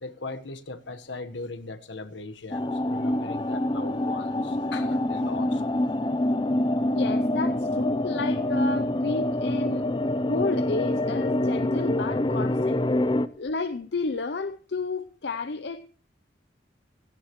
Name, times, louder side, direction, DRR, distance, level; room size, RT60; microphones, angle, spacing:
voice 1, 0.0-5.7, left 3 dB, 80° left, 1.3 m, -39 dB
sound 1, 2.5-13.3, left 1 dB, 25° left, 0.6 m, -26 dB
voice 2, 6.9-9.9 10.3-12.8 13.4-15.9, left 3 dB, 65° left, 0.6 m, -31 dB
16.5 x 16.5 x 3.1 m
head